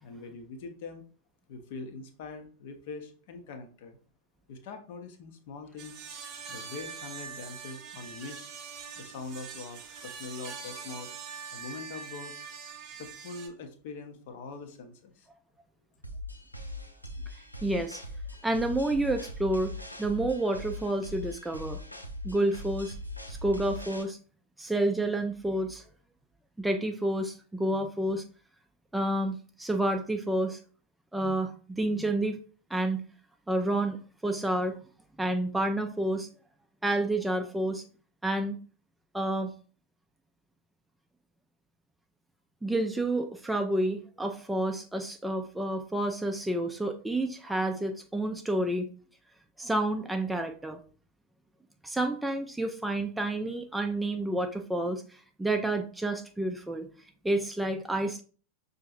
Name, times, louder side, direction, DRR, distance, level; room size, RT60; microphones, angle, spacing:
voice 1, 0.0-1.0 1.5-4.0 4.5-6.0 6.5-8.4 9.0-11.1 11.5-12.3 13.0-15.3, left 4 dB, 50° left, 6 dB, 0.7 m, -43 dB
sound 1, 5.8-13.5, right 6 dB, 35° right, 0.7 m, -43 dB
sound 2, 16.0-24.0, left 1 dB, 85° left, 0.5 m, -40 dB
voice 2, 17.6-18.0 18.4-19.7 20.0-21.8 22.2-23.0 23.3-24.2 24.6-25.8 26.6-28.2 28.9-30.6 31.1-32.4 32.7-33.0 33.5-34.8 35.2-36.3 36.8-37.8 38.2-38.6 39.1-39.5 42.6-48.9 49.6-50.8 51.8-56.9 57.2-58.2, right 1 dB, 5° right, 5 dB, 0.4 m, -29 dB
5.4 x 2.6 x 2.5 m, 0.40 s
figure-of-eight pair, 90°, 0 cm